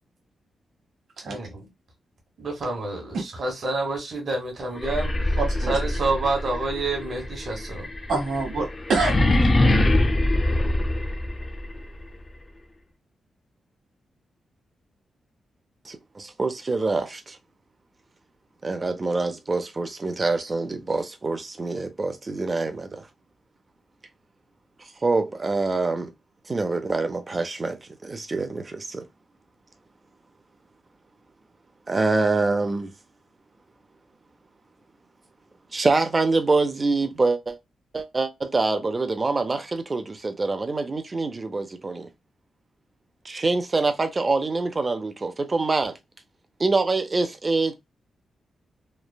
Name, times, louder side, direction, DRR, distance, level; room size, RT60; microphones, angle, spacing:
voice 1, 1.2-1.7 2.4-5.4 5.7-7.9, right 2 dB, 50° right, 1.1 m, -28 dB
sound 1, 4.7-11.6, left 1 dB, 25° left, 0.5 m, -23 dB
voice 2, 5.4-5.8 8.1-9.7, right 3 dB, 80° right, 1.0 m, -27 dB
voice 3, 15.9-17.4 18.6-23.1 24.8-26.1 26.5-29.1 31.9-32.9 35.7-37.6 37.9-42.1 43.2-46.0 46.6-47.8, right 3 dB, 25° right, 0.4 m, -25 dB
3.2 x 2.1 x 2.2 m
wide cardioid pair, 140°, 0 cm